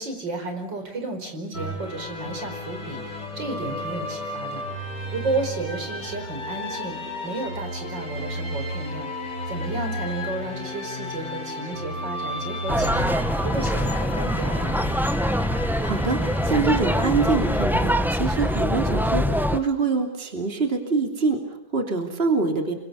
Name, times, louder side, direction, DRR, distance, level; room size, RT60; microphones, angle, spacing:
voice 1, 0.0-7.0 7.2-13.2 13.4-14.9, right 2 dB, 75° right, 5 dB, 5.6 m, -32 dB
sound 1, 1.5-17.9, left 1 dB, 50° left, 5.6 m, -33 dB
sound 2, 12.7-19.6, equal, ahead, 0.6 m, -24 dB
voice 2, 15.5-22.7, right 4 dB, 30° right, 4 dB, 3.2 m, -25 dB
29.0 x 25.0 x 7.1 m, 0.84 s
omnidirectional pair, 2.0 m